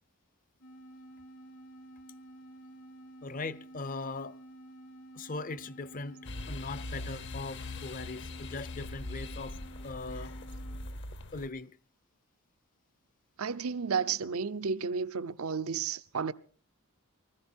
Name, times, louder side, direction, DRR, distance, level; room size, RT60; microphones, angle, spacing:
sound 1, 0.6-11.0, right 1 dB, 75° left, 3.1 m, -51 dB
voice 1, 3.2-4.4 5.1-10.3 11.3-11.8, left 3 dB, 40° left, 0.6 m, -40 dB
sound 2, 6.2-11.5, left 2 dB, 55° left, 1.0 m, -41 dB
voice 2, 13.4-16.3, right 5 dB, 80° right, 0.7 m, -32 dB
19.5 x 14.5 x 4.4 m
head